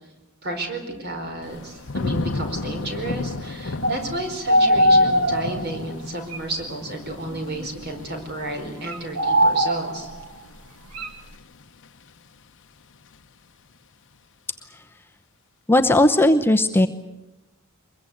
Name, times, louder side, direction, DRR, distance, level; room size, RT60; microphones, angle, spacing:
voice 1, 0.4-10.1, right 1 dB, 45° right, 5 dB, 4.8 m, -32 dB
Thunder / Rain, 1.4-12.4 12.8-13.2, left 2 dB, 55° left, 0.9 m, -34 dB
sound 1, 3.8-4.1 4.5-5.8 6.3-6.4 7.1-7.7 8.8-10.2 10.9-11.1, equal, 85° right, 2.1 m, -20 dB
voice 2, 15.7-16.9, left 1 dB, 10° left, 6 dB, 0.8 m, -17 dB
23.5 x 22.0 x 8.6 m, 1.0 s
head